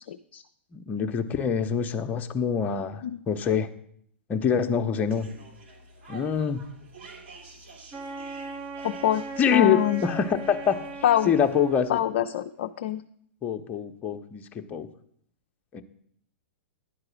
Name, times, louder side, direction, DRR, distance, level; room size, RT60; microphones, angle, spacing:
voice 1, 0.1-0.4 3.0-3.2 8.8-10.0 11.0-11.3 11.9-13.0, left 11 dB, 60° left, 7 dB, 0.4 m, -25 dB
voice 2, 0.7-3.7 4.3-5.3 6.1-6.6 9.4-10.8 11.3-12.0 13.4-14.9 15.7-15.8, left 7 dB, 25° left, 6 dB, 0.7 m, -25 dB
sound 1, 5.1-12.0, right 2 dB, 60° right, 2.6 m, -49 dB
Wind instrument woodwind instrument, 7.9-12.3, right 3 dB, 30° right, 1.0 m, -38 dB
10.5 x 4.8 x 6.2 m, 0.66 s
figure-of-eight pair, 105°, 7 cm